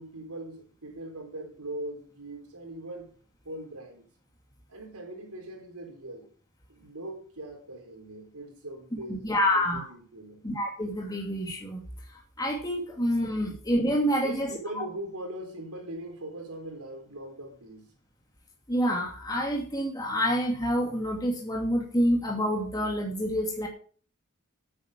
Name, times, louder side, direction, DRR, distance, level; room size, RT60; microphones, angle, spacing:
voice 1, 0.0-3.1 3.4-4.0 4.7-6.3 6.7-10.4 14.2-17.9, right 1 dB, 80° right, 4.4 m, -41 dB
voice 2, 8.9-9.9 10.4-11.9 12.1-14.9 18.7-23.7, equal, 20° left, 2.6 m, -28 dB
9.7 x 9.5 x 7.5 m
head